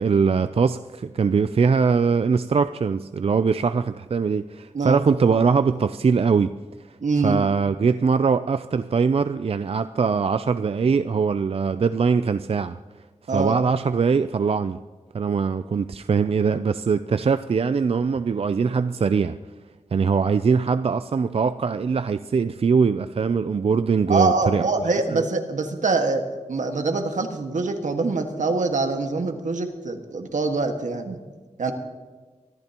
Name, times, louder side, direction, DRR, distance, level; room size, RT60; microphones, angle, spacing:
voice 1, 0.0-6.5 7.2-12.8 13.3-14.8 15.1-19.4 19.9-24.7 25.1-25.2, right 5 dB, 50° right, 11 dB, 0.4 m, -22 dB
voice 2, 7.0-7.4 13.3-13.6 24.1-26.2 26.5-31.2 31.6-31.7, right 3 dB, 80° right, 5 dB, 1.6 m, -24 dB
24.5 x 14.0 x 2.9 m, 1.4 s
wide cardioid pair, 105°, 13 cm